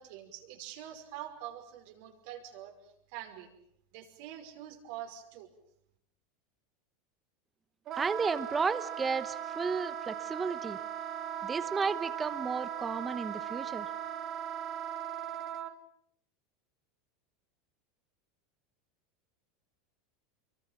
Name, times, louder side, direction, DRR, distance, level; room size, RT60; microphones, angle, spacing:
voice 1, 0.0-3.5 3.9-5.5, right 11 dB, 65° right, 4 dB, 5.6 m, -45 dB
Wind instrument woodwind instrument, 7.9-15.7, right 10 dB, 40° right, 2.0 m, -38 dB
voice 2, 8.0-10.8 11.4-13.9, right 5 dB, 20° right, 14 dB, 1.1 m, -33 dB
27.0 x 23.5 x 7.4 m, 0.69 s
supercardioid pair, 120°, 0 cm